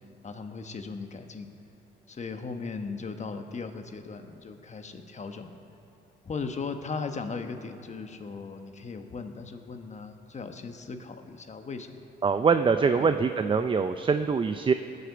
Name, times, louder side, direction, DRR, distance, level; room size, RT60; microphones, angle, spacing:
voice 1, 0.2-1.5 2.1-5.6 6.2-12.0 12.8-13.2, left 4 dB, 35° left, 7 dB, 1.1 m, -38 dB
voice 2, 12.2-14.7, right 5 dB, 25° right, 9 dB, 0.5 m, -24 dB
19.0 x 6.7 x 6.9 m, 2.8 s
cardioid pair, 90°, 20 cm